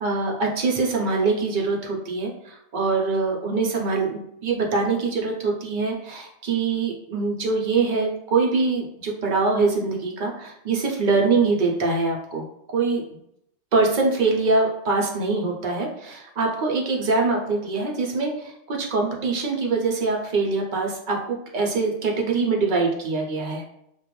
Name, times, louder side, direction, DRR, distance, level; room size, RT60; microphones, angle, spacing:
voice 1, 0.0-12.4 12.7-13.2 13.7-23.6, right 3 dB, 55° right, 0 dB, 0.6 m, -24 dB
2.4 x 2.2 x 3.0 m, 0.76 s
omnidirectional pair, 1.2 m